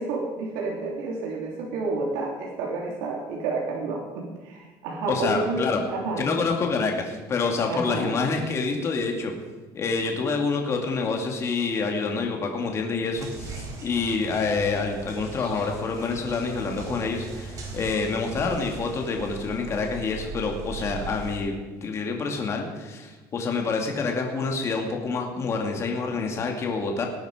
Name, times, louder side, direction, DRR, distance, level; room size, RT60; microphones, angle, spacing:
voice 1, 0.0-6.3 7.7-8.1, right 3 dB, 85° right, -2 dB, 3.3 m, -30 dB
voice 2, 5.1-5.8 6.2-9.3 9.7-27.0, left 4 dB, 30° left, 2 dB, 2.5 m, -27 dB
sound 1, 13.1-21.4, right 4 dB, 40° right, 4.3 m, -39 dB
19.0 x 10.5 x 5.1 m, 1.2 s
cardioid pair, 145°, 9 cm